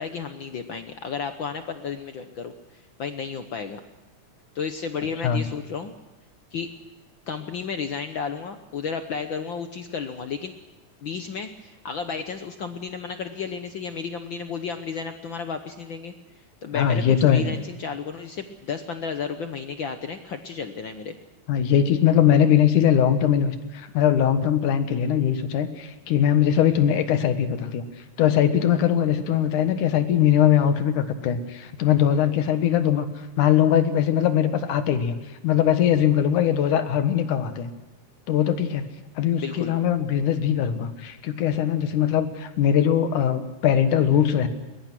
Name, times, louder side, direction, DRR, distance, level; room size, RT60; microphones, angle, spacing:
voice 1, 0.0-3.8 4.5-5.9 6.5-6.7 7.3-10.5 11.0-16.1 16.6-17.0 17.3-21.2 34.8-34.9 39.4-39.7, left 6 dB, 65° left, 7 dB, 1.2 m, -32 dB
voice 2, 16.7-17.5 21.5-27.8 28.2-33.1 33.4-35.2 35.4-37.7 38.3-38.9 39.2-44.5, left 9 dB, 80° left, 9 dB, 2.9 m, -21 dB
21.5 x 21.0 x 6.2 m, 1.1 s
omnidirectional pair, 3.5 m